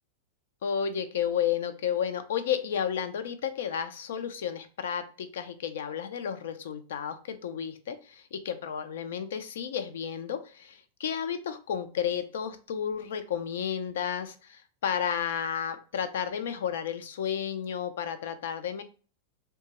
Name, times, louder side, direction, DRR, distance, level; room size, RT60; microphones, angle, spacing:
voice 1, 0.6-18.8, left 8 dB, 70° left, 9 dB, 0.4 m, -32 dB
2.8 x 2.3 x 2.8 m, 0.39 s
hypercardioid pair, 100°, 0 cm